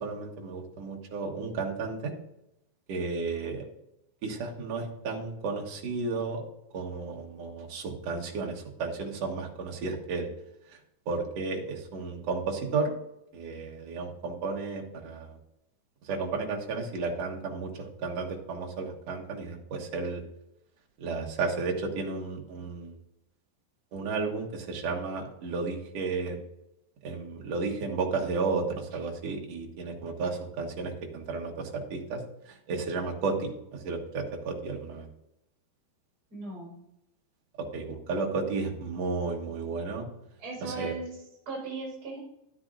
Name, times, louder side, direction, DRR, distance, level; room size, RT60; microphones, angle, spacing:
voice 1, 0.0-2.1 2.9-3.6 4.2-6.4 6.7-10.3 11.0-12.9 13.3-15.4 16.0-20.2 21.0-22.9 23.9-26.4 27.0-35.1 37.6-40.1 40.6-40.9, right 4 dB, 60° right, 1 dB, 1.7 m, -33 dB
voice 2, 36.3-36.7 40.4-41.1 41.5-42.2, right 3 dB, 30° right, -3 dB, 4.9 m, -37 dB
11.5 x 10.0 x 2.5 m, 0.82 s
omnidirectional pair, 4.9 m